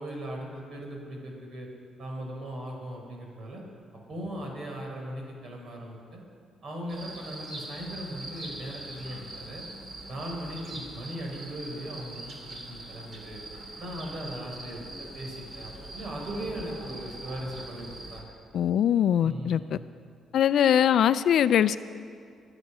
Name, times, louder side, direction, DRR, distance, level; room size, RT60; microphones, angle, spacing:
voice 1, 0.0-1.7 2.0-3.6 4.1-6.2 6.6-9.6 10.1-13.4 13.8-18.3 19.2-19.8, right 1 dB, 60° right, 0 dB, 4.4 m, -38 dB
sound 1, 6.9-18.2, right 2 dB, 45° right, 2.8 m, -42 dB
voice 2, 18.5-19.8 20.3-21.8, left 9 dB, 70° left, 15 dB, 0.4 m, -22 dB
24.0 x 8.1 x 5.6 m, 2.3 s
cardioid pair, 90°, 0 cm